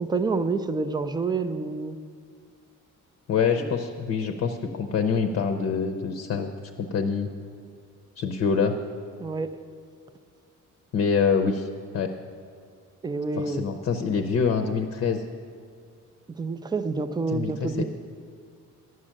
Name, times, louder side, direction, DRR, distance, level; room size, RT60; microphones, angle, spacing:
voice 1, 0.0-2.0 3.6-3.7 9.2-9.6 13.0-13.6 16.4-17.8, right 4 dB, 15° right, 10 dB, 0.3 m, -28 dB
voice 2, 3.3-6.5 6.8-7.3 8.2-8.8 10.9-11.7 11.9-12.1 13.4-15.2 17.3-17.8, left 6 dB, 45° left, 7 dB, 0.6 m, -25 dB
11.0 x 6.3 x 8.7 m, 2.2 s
cardioid pair, 165°, 32 cm